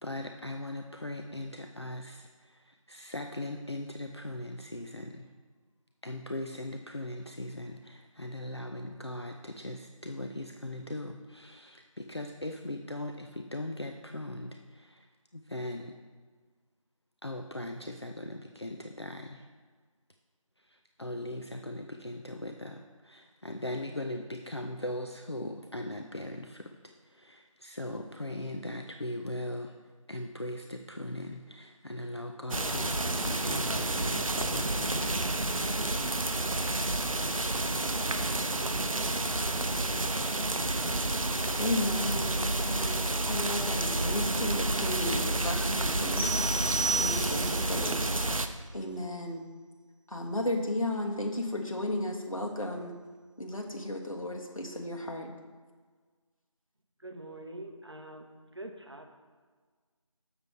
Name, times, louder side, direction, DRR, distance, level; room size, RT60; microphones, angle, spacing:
voice 1, 0.0-5.3 6.0-16.0 17.2-19.5 20.6-26.8 27.1-29.7 30.1-35.5, left 1 dB, 50° left, 4 dB, 0.5 m, -39 dB
sound 1, 32.5-48.5, right 2 dB, 75° right, 0.7 m, -30 dB
voice 2, 41.6-46.6 46.9-48.0 48.7-49.4 50.1-52.9 53.4-55.3, left 1 dB, 75° left, 2 dB, 1.5 m, -34 dB
sound 2, 46.2-47.7, right 3 dB, 20° left, 1.2 m, -32 dB
voice 3, 57.0-59.1, right 1 dB, 50° right, 4 dB, 0.9 m, -44 dB
6.8 x 6.8 x 4.4 m, 1.5 s
figure-of-eight pair, 175°, 18 cm